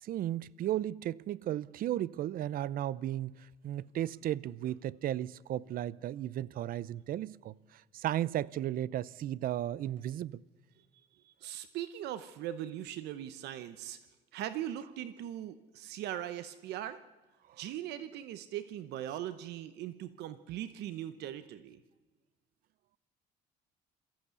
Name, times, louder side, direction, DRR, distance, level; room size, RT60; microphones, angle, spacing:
voice 1, 0.0-10.4, right 12 dB, 60° right, 0.6 m, -35 dB
voice 2, 11.2-14.0 14.3-17.0 17.6-21.8, right 12 dB, 80° right, 0.9 m, -40 dB
23.0 x 14.5 x 8.3 m
cardioid pair, 110°, 17 cm